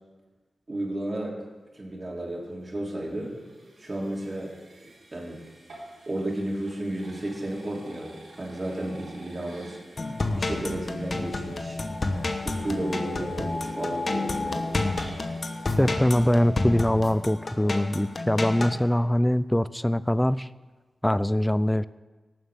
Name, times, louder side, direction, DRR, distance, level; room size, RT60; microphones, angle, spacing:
voice 1, 0.7-1.4 1.7-3.3 3.8-4.5 5.1-5.4 6.1-9.8 10.4-11.8 12.4-14.8, right 1 dB, 40° right, -3 dB, 3.3 m, -33 dB
sound 1, 2.2-17.4, right 1 dB, 80° right, 3.7 m, -51 dB
sound 2, 10.0-18.8, left 2 dB, 55° left, 1.1 m, -30 dB
voice 2, 15.8-20.5 21.0-21.8, left 1 dB, 10° left, 16 dB, 0.4 m, -23 dB
18.5 x 7.4 x 3.7 m, 1.3 s
cardioid pair, 45°, 0 cm